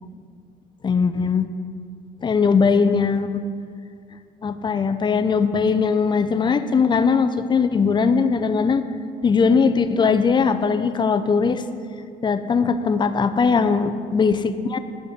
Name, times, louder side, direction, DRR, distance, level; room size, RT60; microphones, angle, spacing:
voice 1, 0.8-1.5 2.2-3.4 4.4-8.8 9.2-11.6 12.2-14.8, left 5 dB, 25° left, 10 dB, 0.5 m, -20 dB
11.0 x 5.3 x 6.6 m, 2.3 s
cardioid pair, 110°, 17 cm